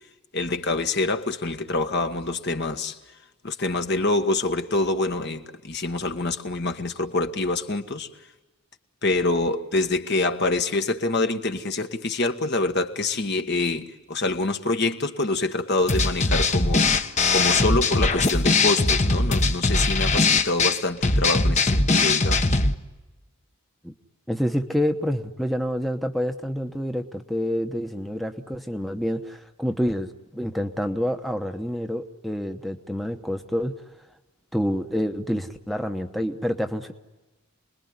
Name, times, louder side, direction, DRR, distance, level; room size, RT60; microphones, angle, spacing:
voice 1, 0.3-3.0 3.4-8.1 9.0-16.9 17.3-22.6, left 2 dB, 50° left, 1.6 m, -26 dB
sound 1, 15.9-22.7, left 3 dB, 30° left, 1.1 m, -21 dB
voice 2, 24.3-33.7 34.5-36.9, equal, ahead, 1.0 m, -27 dB
29.5 x 21.0 x 9.5 m
head